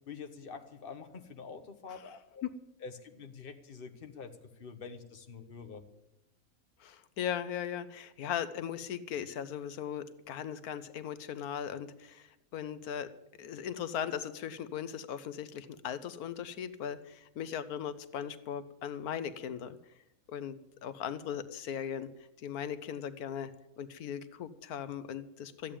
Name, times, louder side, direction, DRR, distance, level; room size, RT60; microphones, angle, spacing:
voice 1, 0.1-2.4 2.8-4.3 4.6-5.8, left 5 dB, 40° left, 6 dB, 1.3 m, -46 dB
voice 2, 6.8-13.1 13.4-19.8 20.3-22.1 22.4-23.5 23.8-25.8, left 9 dB, 85° left, 13 dB, 1.3 m, -38 dB
14.0 x 8.7 x 8.8 m, 0.88 s
omnidirectional pair, 1.5 m